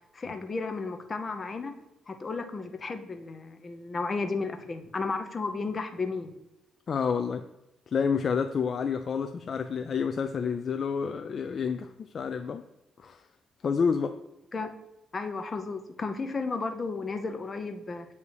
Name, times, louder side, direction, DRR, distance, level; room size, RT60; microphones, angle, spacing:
voice 1, 0.1-1.8 2.1-6.3 14.5-14.7 15.1-18.1, left 4 dB, 35° left, 6 dB, 0.8 m, -33 dB
voice 2, 6.9-7.4 7.9-12.6 13.0-13.2 13.6-14.2, left 6 dB, 50° left, 7 dB, 0.3 m, -29 dB
8.2 x 2.8 x 4.7 m, 0.95 s
cardioid pair, 90°, 0 cm